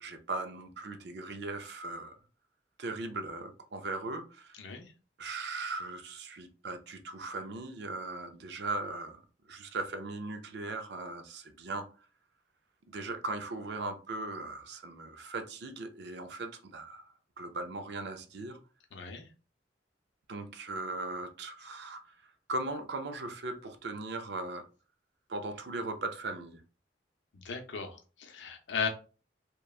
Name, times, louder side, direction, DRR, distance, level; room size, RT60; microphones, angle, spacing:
voice 1, 0.0-2.2 2.8-4.6 5.2-9.2 9.5-11.9 12.9-17.0 17.4-18.6 20.3-22.2 22.5-24.6 25.3-26.6, right 2 dB, 65° right, 0.5 m, -38 dB
voice 2, 4.6-4.9 18.9-19.3 27.3-28.9, left 6 dB, 85° left, 0.6 m, -36 dB
2.9 x 2.2 x 2.3 m
head